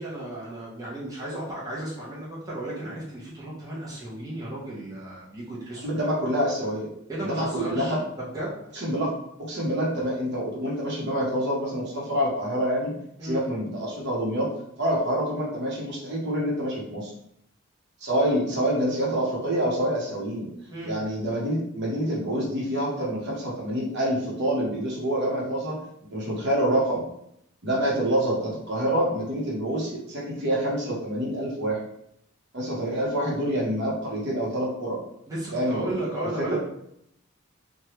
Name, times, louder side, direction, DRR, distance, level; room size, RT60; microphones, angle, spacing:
voice 1, 0.0-5.9 7.1-8.6 13.2-13.4 20.7-21.0 35.3-36.6, right 1 dB, 15° right, -7 dB, 0.7 m, -34 dB
voice 2, 5.8-6.9 7.2-8.0 8.8-9.1 9.4-12.9 13.2-14.5 14.8-17.1 18.0-20.5 20.8-25.8 26.1-27.0 27.6-31.8 32.5-35.0 35.5-36.0 36.4-36.6, right 1 dB, 55° right, -3 dB, 0.9 m, -26 dB
3.2 x 2.2 x 2.9 m, 0.74 s
head